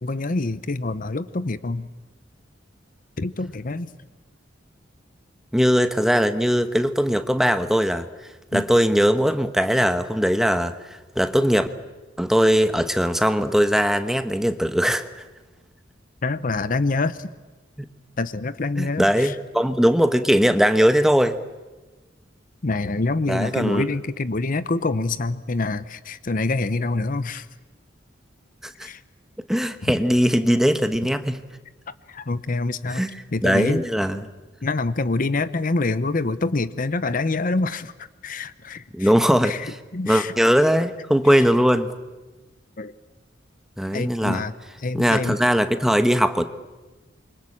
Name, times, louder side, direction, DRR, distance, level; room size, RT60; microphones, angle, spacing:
voice 1, 0.0-1.9 3.2-3.9 8.5-8.7 16.2-17.3 18.2-19.4 22.6-27.5 28.8-29.0 29.8-30.0 32.1-33.0 33.3-33.8 34.6-39.1 39.4-40.3 41.4-41.5 42.8-42.9 43.9-45.4, left 3 dB, 45° left, 14 dB, 0.8 m, -26 dB
voice 2, 5.5-8.1 8.5-11.7 12.2-15.1 18.8-21.4 23.3-23.9 28.6-28.7 29.5-31.4 32.9-33.2 33.4-34.2 38.9-39.7 40.1-41.9 43.8-44.4 44.9-46.5, equal, ahead, 9 dB, 1.1 m, -20 dB
27.5 x 24.5 x 8.7 m, 1.2 s
head